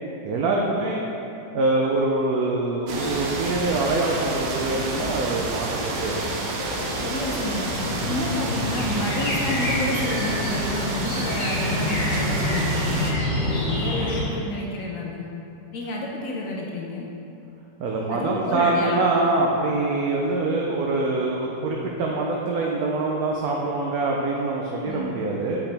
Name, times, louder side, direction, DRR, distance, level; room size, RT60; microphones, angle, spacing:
voice 1, 0.2-1.0 1.5-6.2 17.8-25.6, right 2 dB, 70° right, -1 dB, 0.9 m, -24 dB
sound 1, 2.9-14.2, left 1 dB, 40° left, 0.7 m, -28 dB
sound 2, 2.9-13.1, right 3 dB, 85° right, 1.4 m, -31 dB
voice 2, 7.0-7.7 8.1-13.0 13.5-15.2 15.7-17.1 18.1-19.0 24.8-25.1, left 2 dB, 70° left, -1 dB, 0.8 m, -30 dB
7.0 x 4.8 x 3.4 m, 2.8 s
omnidirectional pair, 1.9 m